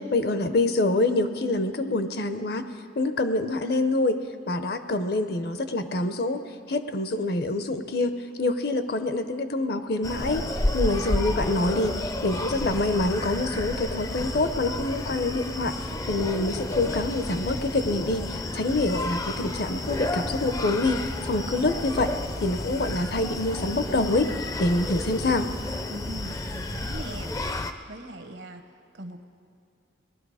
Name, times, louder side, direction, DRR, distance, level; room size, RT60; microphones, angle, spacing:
voice 1, 0.1-2.6 3.0-4.2 4.5-6.4 6.7-10.5 10.7-22.1 22.4-24.3 24.6-25.5, left 2 dB, 55° left, 10 dB, 0.7 m, -26 dB
Screaming, 10.0-27.7, left 2 dB, 20° left, 0.4 m, -31 dB
voice 2, 25.9-29.2, right 1 dB, 75° right, 5 dB, 1.0 m, -41 dB
19.0 x 12.0 x 4.9 m, 2.3 s
head